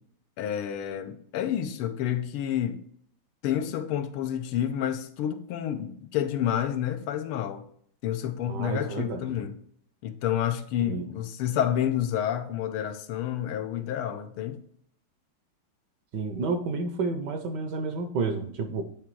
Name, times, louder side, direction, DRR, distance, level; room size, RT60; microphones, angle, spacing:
voice 1, 0.4-2.8 3.4-7.6 8.0-9.6 10.0-14.6, left 10 dB, 85° left, 1.6 m, -29 dB
voice 2, 8.5-9.4 10.8-11.1 16.1-18.8, right 4 dB, 70° right, 1.1 m, -30 dB
8.9 x 3.4 x 4.5 m
omnidirectional pair, 2.3 m